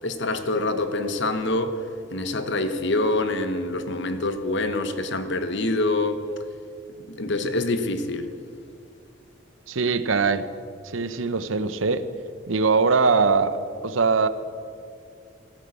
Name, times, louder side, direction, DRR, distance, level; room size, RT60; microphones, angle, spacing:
voice 1, 0.0-1.7 2.1-6.2 7.1-8.3, left 2 dB, 60° left, 1.1 m, -25 dB
voice 2, 9.7-10.5 10.9-12.1 12.5-14.3, right 4 dB, 75° right, 0.8 m, -22 dB
14.0 x 9.4 x 8.4 m
head